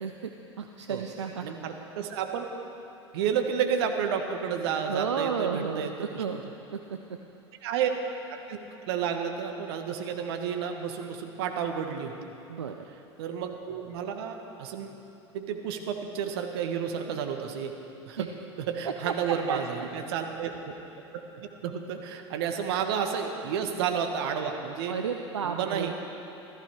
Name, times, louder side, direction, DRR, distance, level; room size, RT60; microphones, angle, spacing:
voice 1, 0.0-1.5 4.9-6.4 6.7-7.2 12.5-12.9 18.2-18.3 19.0-19.9 24.9-25.9, right 6 dB, 80° right, 5 dB, 0.6 m, -33 dB
voice 2, 1.4-2.5 3.1-6.2 7.6-7.9 8.3-8.6 8.9-12.1 13.2-15.0 15.3-17.7 18.0-18.3 18.6-20.5 21.1-25.0 25.4-25.9, right 7 dB, 60° right, 4 dB, 1.3 m, -31 dB
15.0 x 14.0 x 4.8 m, 3.0 s
figure-of-eight pair, 80°, 15 cm